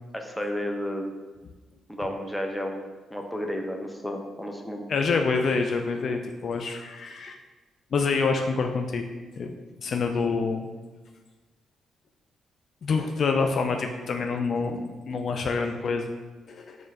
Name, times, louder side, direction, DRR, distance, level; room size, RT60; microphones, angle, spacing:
voice 1, 0.1-1.0 1.9-4.8, left 1 dB, 5° left, 3 dB, 0.7 m, -32 dB
voice 2, 4.9-7.4 7.9-9.0 9.4-10.7 12.8-16.1 16.5-16.8, left 4 dB, 55° left, 4 dB, 0.3 m, -27 dB
3.9 x 3.1 x 3.8 m, 1.3 s
hypercardioid pair, 45°, 0 cm